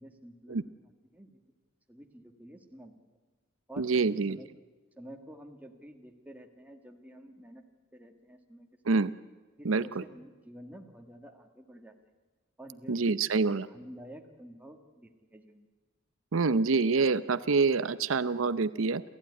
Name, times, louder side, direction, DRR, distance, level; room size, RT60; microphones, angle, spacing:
voice 1, 0.0-1.4 1.9-2.9 3.7-4.5 5.0-7.6 7.9-9.0 9.6-11.9 12.6-13.2 13.5-15.7, equal, 10° right, 3 dB, 1.7 m, -50 dB
voice 2, 3.8-4.4 8.9-9.1 9.6-10.0 12.9-13.7 16.3-19.0, right 4 dB, 80° right, 15 dB, 0.7 m, -26 dB
28.5 x 14.5 x 9.7 m, 1.3 s
head